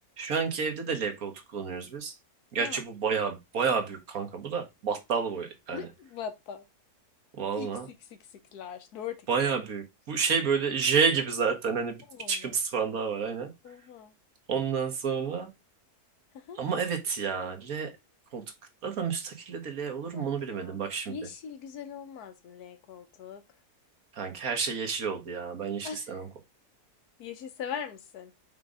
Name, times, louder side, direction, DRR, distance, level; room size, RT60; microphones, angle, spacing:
voice 1, 0.2-2.2 2.5-5.9 7.3-7.9 9.3-12.0 12.3-13.5 14.5-15.5 16.6-17.9 18.3-18.4 18.8-21.1 24.1-26.3, right 6 dB, 65° right, 1.7 m, -30 dB
voice 2, 5.7-6.7 7.5-9.5 12.1-12.5 13.6-14.1 16.3-16.6 20.1-20.8 21.1-23.4 25.8-26.2 27.2-28.3, left 7 dB, 85° left, 1.4 m, -41 dB
5.7 x 3.8 x 4.8 m
omnidirectional pair, 1.6 m